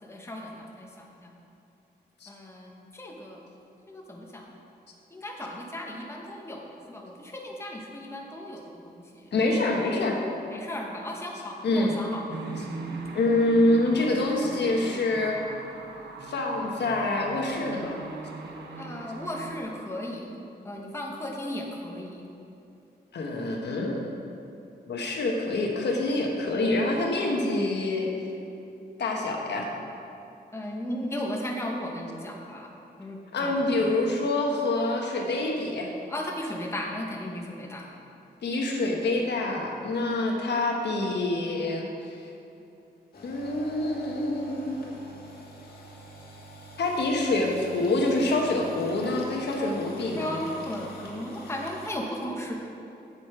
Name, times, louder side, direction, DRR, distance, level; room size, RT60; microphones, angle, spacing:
voice 1, 0.0-1.3 2.3-3.4 3.9-4.4 5.1-9.7 10.5-12.2 12.6-12.8 18.8-20.3 20.6-22.2 30.5-32.7 33.0-34.1 36.1-37.9 50.2-52.5, left 1 dB, 15° left, -1 dB, 1.1 m, -36 dB
voice 2, 9.3-10.2 11.6-12.0 13.1-15.4 16.3-18.0 23.1-24.0 24.9-28.1 29.0-29.7 33.3-35.9 38.4-42.1 43.2-44.8 46.8-50.4, left 2 dB, 80° left, 0 dB, 1.2 m, -26 dB
sound 1, 12.3-19.6, right 3 dB, 80° right, 1.0 m, -39 dB
sound 2, 43.1-51.9, right 1 dB, 65° left, 1.6 m, -46 dB
8.4 x 7.8 x 4.8 m, 2.7 s
wide cardioid pair, 130°, 17 cm